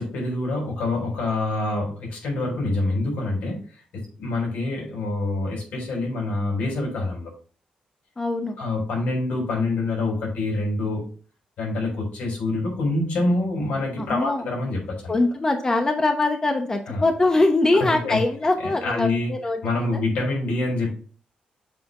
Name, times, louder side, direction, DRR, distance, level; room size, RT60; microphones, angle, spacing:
voice 1, 0.0-3.6 3.9-7.3 8.6-11.0 11.6-15.1 16.9-17.0 18.0-18.2 18.6-19.3 19.6-20.9, left 2 dB, 90° left, -1 dB, 3.8 m, -26 dB
voice 2, 8.2-8.6 14.0-14.4 15.1-20.0, left 2 dB, 20° left, 5 dB, 0.9 m, -22 dB
7.6 x 3.4 x 5.2 m, 0.41 s
cardioid pair, 120°, 3 cm